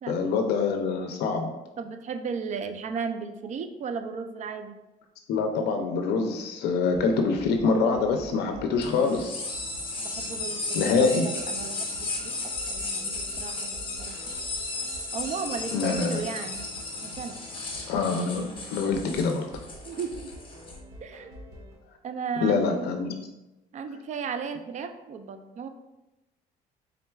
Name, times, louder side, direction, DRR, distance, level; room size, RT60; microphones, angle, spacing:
voice 1, 0.1-1.5 5.3-9.8 10.7-11.3 15.7-16.2 17.9-19.5 22.4-23.1, left 4 dB, 75° left, 4 dB, 0.5 m, -25 dB
voice 2, 1.8-4.8 10.0-14.2 15.1-16.7 17.0-17.4 19.8-20.3 21.0-21.3 22.0-22.9 23.7-25.7, right 5 dB, 45° right, 8 dB, 0.4 m, -35 dB
sound 1, 6.9-21.7, equal, 70° right, 1.0 m, -47 dB
sound 2, 8.8-20.8, left 3 dB, 30° left, 0.9 m, -35 dB
4.3 x 3.7 x 2.3 m, 1.0 s
cardioid pair, 110°, 17 cm